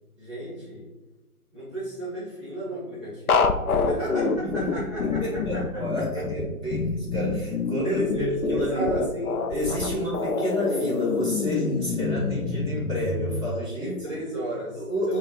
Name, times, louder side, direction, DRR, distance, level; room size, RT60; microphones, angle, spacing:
voice 1, 0.2-0.9 1.5-6.2 7.8-9.5 9.9-10.5 13.8-15.2, right 1 dB, 20° right, -7 dB, 0.7 m, -34 dB
sound 1, 3.3-13.5, left 4 dB, 70° left, 0.6 m, -26 dB
voice 2, 4.4-9.1 9.5-14.2 14.7-15.2, equal, 20° left, -7 dB, 1.3 m, -30 dB
6.8 x 2.3 x 2.4 m, 1.1 s
figure-of-eight pair, 160°, 45 cm